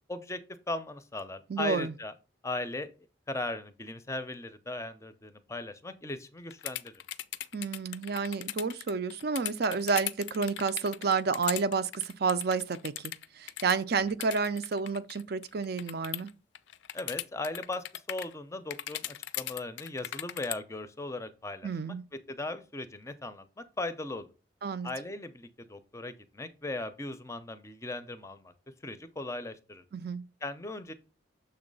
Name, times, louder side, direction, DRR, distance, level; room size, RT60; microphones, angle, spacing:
voice 1, 0.1-0.4 0.7-2.1 2.4-2.9 3.3-6.9 16.9-24.3 24.8-28.5 28.8-29.8 30.4-30.9, left 2 dB, 15° left, 0.5 m, -38 dB
voice 2, 1.5-1.9 7.5-16.3 21.6-22.0 24.6-24.9 29.9-30.2, right 5 dB, 55° right, 0.5 m, -30 dB
sound 1, 6.5-16.3 16.5-18.3 18.7-20.5, left 13 dB, 70° left, 0.4 m, -38 dB
6.8 x 3.2 x 5.3 m
head